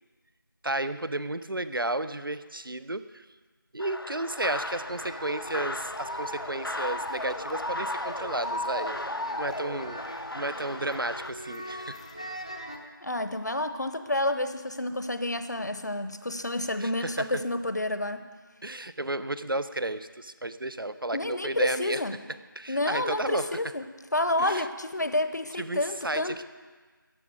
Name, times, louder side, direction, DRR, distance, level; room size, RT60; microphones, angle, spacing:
voice 1, 0.6-3.2 3.7-10.0 10.3-12.0 16.8-17.4 18.6-22.0 22.6-23.5 24.4-24.6 25.6-26.4, right 2 dB, 75° right, 13 dB, 0.8 m, -33 dB
sound 1, 3.8-11.3, left 1 dB, 90° left, 0.8 m, -35 dB
sound 2, 4.5-12.8, equal, 15° left, 0.6 m, -43 dB
voice 2, 13.0-18.2 21.1-22.2 22.7-23.9 24.1-26.4, left 1 dB, 50° left, 10 dB, 0.9 m, -29 dB
14.0 x 7.2 x 9.4 m, 1.4 s
figure-of-eight pair, 175°, 12 cm